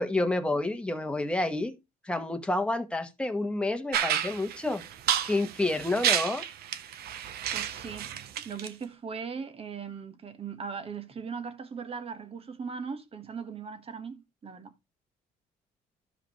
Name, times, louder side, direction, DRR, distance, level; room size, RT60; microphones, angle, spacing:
voice 1, 0.0-1.8 2.0-4.8 5.2-6.4, left 2 dB, 5° left, 1.2 m, -29 dB
sound 1, 3.9-8.7, right 10 dB, 65° right, 0.9 m, -30 dB
voice 2, 7.5-8.1 8.4-14.7, right 6 dB, 35° right, 1.4 m, -39 dB
13.0 x 4.8 x 3.1 m
cardioid pair, 110°, 17 cm